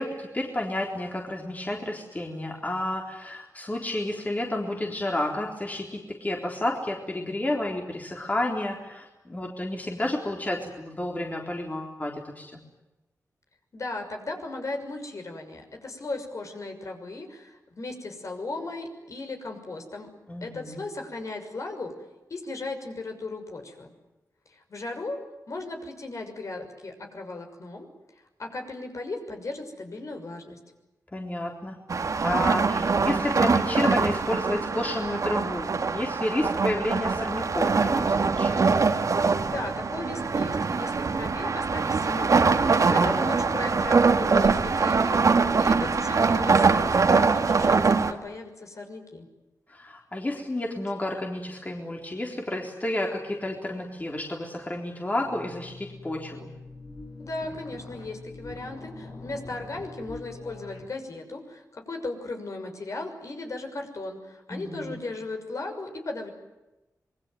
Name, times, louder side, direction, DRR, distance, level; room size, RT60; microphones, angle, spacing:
voice 1, 0.0-12.6 20.3-20.8 31.1-31.8 32.2-38.7 42.8-43.1 49.7-56.5 64.5-65.0, left 1 dB, 25° left, 1 dB, 3.9 m, -31 dB
voice 2, 13.7-20.1 20.4-21.9 22.3-23.9 24.5-25.2 25.5-27.9 28.4-30.6 39.5-49.3 57.2-66.3, left 2 dB, 55° left, 4 dB, 6.3 m, -36 dB
sound 1, 31.9-48.1, right 4 dB, 60° right, 2.1 m, -23 dB
sound 2, 55.2-60.9, left 3 dB, 80° left, 7.8 m, -43 dB
26.5 x 22.0 x 9.4 m, 1.0 s
wide cardioid pair, 90°, 6 cm